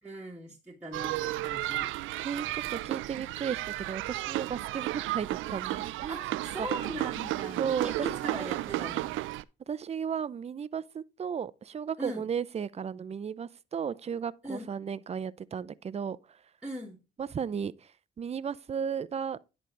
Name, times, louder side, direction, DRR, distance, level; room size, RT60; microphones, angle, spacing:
voice 1, 0.0-1.9 6.1-9.2 12.0-12.3 14.4-14.7 16.6-17.0, right 1 dB, 5° right, 1.6 m, -40 dB
sound 1, 0.9-9.4, right 16 dB, 90° right, 0.4 m, -33 dB
voice 2, 2.2-6.2 6.6-6.7 7.6-8.5 9.7-16.4 17.2-17.9 18.2-19.4, right 7 dB, 30° right, 0.5 m, -35 dB
10.5 x 4.0 x 4.5 m
cardioid pair, 90°, 20 cm